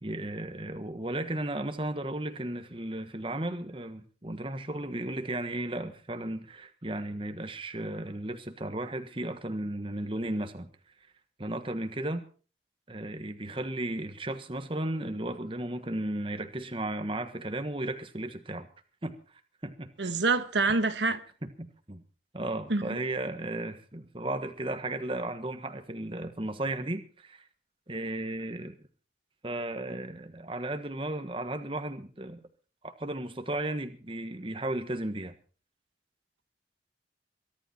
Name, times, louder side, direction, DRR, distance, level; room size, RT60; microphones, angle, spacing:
voice 1, 0.0-10.7 11.4-12.2 12.9-18.7 19.0-19.2 19.6-20.1 21.4-22.0 22.3-27.5 27.9-28.8 29.4-32.4 32.8-35.3, right 1 dB, 30° right, 1.5 m, -35 dB
voice 2, 20.0-21.2 22.7-23.0, right 3 dB, 85° right, 1.3 m, -26 dB
23.0 x 12.5 x 4.4 m
head